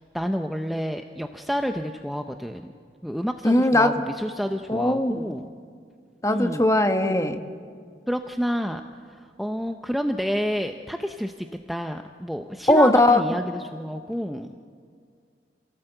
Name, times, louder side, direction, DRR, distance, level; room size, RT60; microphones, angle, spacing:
voice 1, 0.1-2.6 3.0-5.5 6.3-6.7 7.0-7.2 8.1-14.5, equal, ahead, 5 dB, 0.6 m, -29 dB
voice 2, 3.4-4.0 4.7-5.3 6.2-7.4 12.7-13.2, left 1 dB, 15° left, 6 dB, 1.2 m, -19 dB
27.5 x 17.0 x 7.9 m, 2.1 s
head